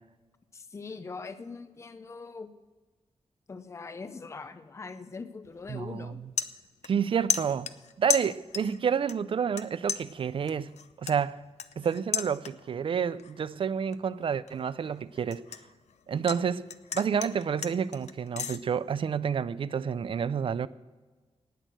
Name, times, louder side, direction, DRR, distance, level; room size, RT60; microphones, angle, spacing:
voice 1, 0.5-2.5 3.5-6.2, left 4 dB, 25° left, 0.5 m, -42 dB
sound 1, 5.4-5.7 6.0-7.0 7.3-8.8 9.1-9.6 9.9-12.8 13.2-13.5 13.9-16.4 16.7-18.6, left 7 dB, 80° left, 0.6 m, -34 dB
voice 2, 5.7-6.1 6.8-7.7 8.0-10.7 11.0-11.4 11.8-15.4 16.1-16.7 16.9-20.7, right 7 dB, 50° right, 0.4 m, -29 dB
18.5 x 6.4 x 7.7 m
wide cardioid pair, 175°, 11 cm